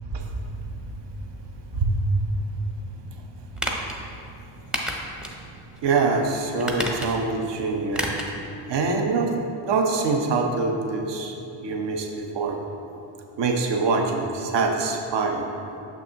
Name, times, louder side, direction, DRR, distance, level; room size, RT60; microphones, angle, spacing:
sound 1, 3.6-4.0 4.7-5.4 5.8-5.9 6.6-7.3 7.9-8.4 8.7-8.8, equal, ahead, 0.6 m, -29 dB
voice 1, 5.8-8.2 8.7-9.4 9.7-11.3 11.6-12.6 13.4-15.5, right 4 dB, 55° right, 2 dB, 0.8 m, -24 dB
6.4 x 6.1 x 2.8 m, 2.8 s
cardioid pair, 85°, 50 cm